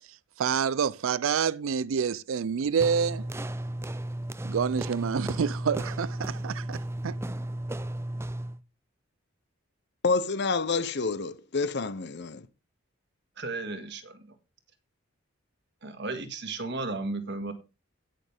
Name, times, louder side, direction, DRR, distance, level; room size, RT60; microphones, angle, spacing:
voice 1, 0.4-3.3 4.4-7.2, right 6 dB, 75° right, 0.4 m, -28 dB
sound 1, 2.8-8.6, right 1 dB, 10° right, 0.5 m, -34 dB
voice 2, 10.0-12.4, left 4 dB, 55° left, 0.8 m, -28 dB
voice 3, 13.4-14.3 15.8-17.5, right 3 dB, 55° right, 1.8 m, -34 dB
17.0 x 6.5 x 3.5 m
head